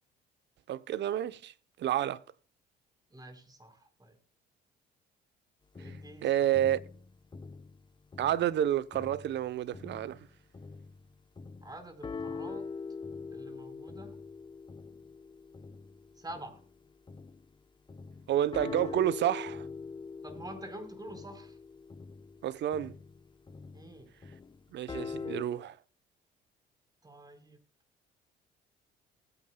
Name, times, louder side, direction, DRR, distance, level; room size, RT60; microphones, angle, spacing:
voice 1, 0.7-1.5 1.8-2.2 5.8-5.9 6.2-6.8 8.2-10.3 18.3-19.7 22.4-22.9 24.7-25.8, right 11 dB, 60° right, 0.8 m, -29 dB
voice 2, 3.1-4.2 5.8-6.5 11.6-12.6 13.3-14.2 16.2-16.6 20.2-21.6 23.7-24.1 27.0-27.6, right 1 dB, 20° right, 4.1 m, -47 dB
sound 1, 5.7-8.6 8.9-17.5 17.9-25.4, left 4 dB, 20° left, 0.8 m, -43 dB
19.5 x 8.9 x 2.2 m
supercardioid pair, 65°, 21 cm